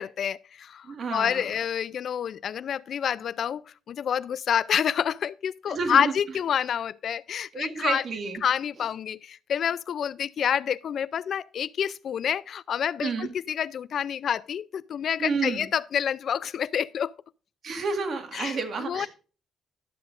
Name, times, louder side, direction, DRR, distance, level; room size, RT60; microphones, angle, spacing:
voice 1, 0.0-0.9 1.1-3.6 3.9-8.0 8.4-17.1 18.3-18.6 18.9-19.1, left 8 dB, 60° left, 0.3 m, -28 dB
voice 2, 0.8-1.5 5.7-6.1 7.5-8.4 13.0-13.3 15.2-15.7 17.6-19.1, right 4 dB, 50° right, 1.8 m, -30 dB
12.0 x 7.8 x 2.5 m
cardioid pair, 90°, 0 cm